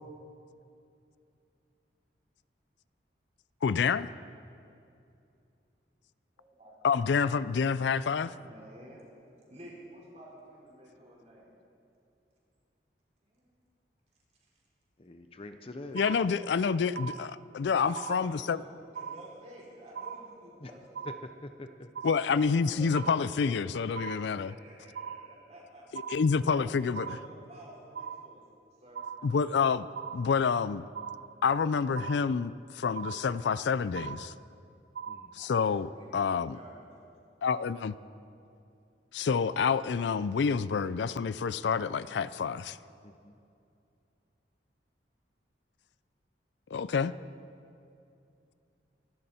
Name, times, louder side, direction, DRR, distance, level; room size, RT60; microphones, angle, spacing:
voice 1, 3.6-4.1 6.8-8.3 15.9-18.6 22.0-24.5 25.9-27.1 29.2-29.9 30.1-30.9 31.4-34.3 35.3-36.6 37.4-38.0 39.1-42.8 46.7-47.1, left 5 dB, 80° left, 17 dB, 0.4 m, -28 dB
voice 2, 8.3-9.1 9.5-11.6 13.2-13.6 14.4-14.5 17.8-18.7 18.9-21.1 22.1-23.8 24.4-26.0 26.3-28.4 28.8-29.1 35.4-37.0, right 1 dB, 40° right, -4 dB, 4.5 m, -51 dB
voice 3, 15.0-16.0 20.6-20.7 21.0-21.1 21.4-21.9 35.1-35.3 43.0-43.3, left 2 dB, 30° left, 8 dB, 0.6 m, -45 dB
sound 1, 16.0-16.6 17.0-17.6 18.0-18.6 19.0-19.6 20.0-20.6 21.0-21.6 22.0-22.6 23.0-23.6 24.0-24.6 25.0-25.6 26.0-26.6 27.0-27.6 27.9-28.6 28.9-29.6 30.0-30.6 31.0-31.6 32.0-32.6 33.0-33.6 34.0-34.6 35.0-35.6, right 7 dB, 80° right, 0.5 m, -41 dB
26.0 x 12.0 x 4.3 m, 2.6 s
head